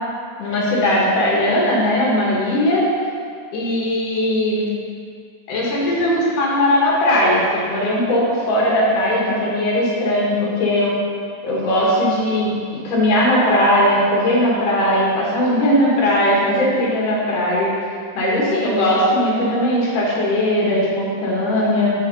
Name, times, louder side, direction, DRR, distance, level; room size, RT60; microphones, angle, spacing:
voice 1, 0.4-2.8 3.5-4.7 5.5-10.9 11.4-12.5 12.8-17.8 18.2-21.9, left 1 dB, 55° left, -5 dB, 2.7 m, -18 dB
7.2 x 5.6 x 5.4 m, 2.2 s
omnidirectional pair, 5.1 m